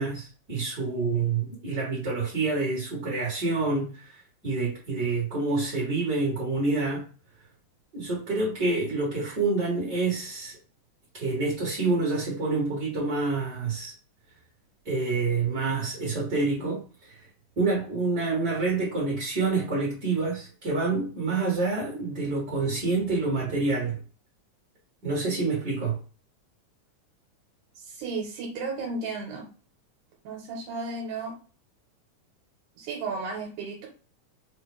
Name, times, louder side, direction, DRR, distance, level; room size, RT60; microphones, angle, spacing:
voice 1, 0.0-7.1 7.9-10.6 11.1-13.9 14.9-17.3 17.6-24.0 25.0-26.0, right 3 dB, 40° right, 1.8 m, -27 dB
voice 2, 27.7-29.5 30.2-31.3 32.8-33.9, right 3 dB, 85° right, 2.4 m, -34 dB
5.1 x 2.4 x 3.3 m
omnidirectional pair, 3.5 m